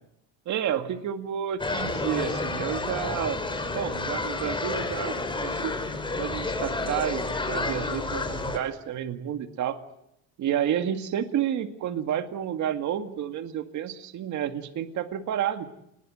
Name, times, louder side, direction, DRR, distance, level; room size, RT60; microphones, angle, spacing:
voice 1, 0.5-3.4 3.7-5.7 6.2-9.8 10.4-15.7, right 10 dB, 55° right, 7 dB, 2.1 m, -30 dB
sound 1, 1.6-8.6, left 3 dB, 15° left, 4.9 m, -30 dB
28.5 x 21.0 x 7.8 m, 0.77 s
cardioid pair, 110°, 35 cm